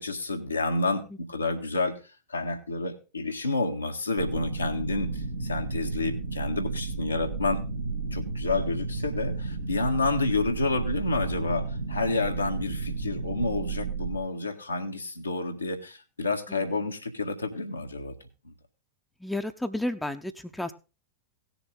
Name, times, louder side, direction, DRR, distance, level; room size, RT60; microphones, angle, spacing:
voice 1, 0.0-2.0 2.3-7.6 8.1-18.1 18.4-18.5, left 3 dB, 80° left, 2 dB, 1.7 m, -29 dB
sound 1, 4.2-14.2, right 4 dB, 75° right, 1.6 m, -33 dB
voice 2, 19.2-20.7, left 1 dB, 5° left, 8 dB, 0.9 m, -32 dB
17.5 x 7.1 x 3.7 m, 0.30 s
figure-of-eight pair, 90°, 0 cm